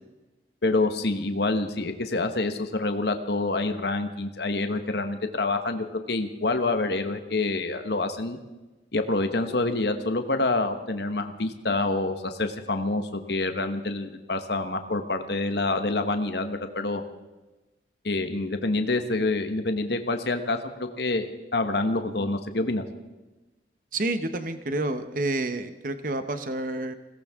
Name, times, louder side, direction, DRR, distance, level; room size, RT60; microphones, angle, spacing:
voice 1, 0.6-8.4 8.9-17.0 18.0-22.8, left 2 dB, 60° left, 7 dB, 1.2 m, -27 dB
voice 2, 23.9-27.0, right 2 dB, 45° right, 9 dB, 0.9 m, -29 dB
22.0 x 17.5 x 3.6 m, 1.1 s
head